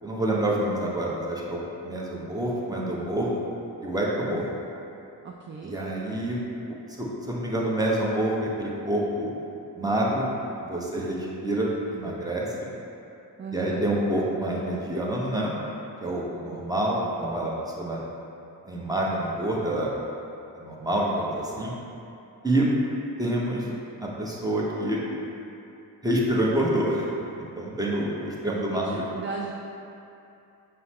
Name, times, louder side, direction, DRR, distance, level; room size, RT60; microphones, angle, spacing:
voice 1, 0.0-3.5 3.8-4.4 5.6-6.4 6.9-9.3 9.8-10.3 10.6-12.5 13.5-15.5 16.0-18.0 18.7-19.9 20.5-21.7 22.4-22.7 23.2-23.7 24.0-25.0 26.0-29.0, right 1 dB, 10° right, -4 dB, 0.9 m, -27 dB
voice 2, 5.2-5.8 13.4-13.9 28.7-29.5, right 4 dB, 30° right, -1 dB, 0.4 m, -37 dB
5.6 x 2.1 x 4.2 m, 2.7 s
cardioid pair, 45°, 42 cm